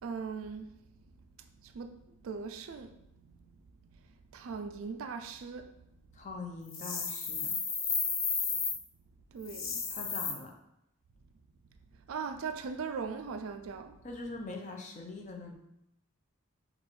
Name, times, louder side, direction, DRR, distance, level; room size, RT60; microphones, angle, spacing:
voice 1, 0.0-0.8 1.4-3.5 3.8-4.0 4.3-5.8 8.4-8.5 9.3-9.8 12.1-14.0, right 5 dB, 70° right, 0.3 m, -40 dB
voice 2, 6.2-7.6 9.9-10.5 14.0-15.5, left 3 dB, 30° left, 0.5 m, -42 dB
sound 1, 6.7-8.8 9.4-10.3, left 5 dB, 60° left, 0.8 m, -33 dB
6.0 x 2.4 x 3.2 m
head